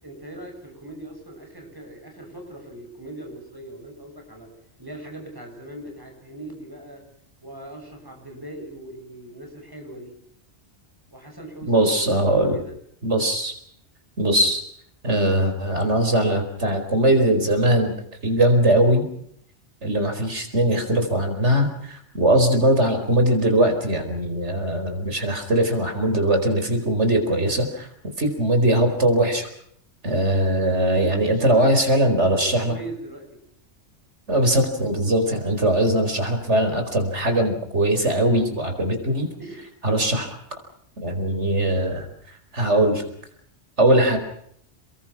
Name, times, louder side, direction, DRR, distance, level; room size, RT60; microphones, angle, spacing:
voice 1, 0.0-4.5 4.8-7.0 7.4-10.2 11.1-12.7 22.3-22.4 31.0-31.9 32.2-33.3 39.0-39.1 39.4-39.6 43.9-44.2, right 1 dB, 20° right, 2 dB, 7.0 m, -40 dB
voice 2, 11.7-12.6 13.0-13.5 14.2-14.6 15.0-17.9 18.2-19.1 19.8-27.9 28.2-29.5 30.0-32.7 34.3-39.3 39.8-40.3 41.0-42.0 42.5-43.0 43.8-44.2, right 1 dB, 75° right, 6 dB, 4.9 m, -20 dB
29.0 x 22.5 x 6.1 m, 0.68 s
omnidirectional pair, 1.2 m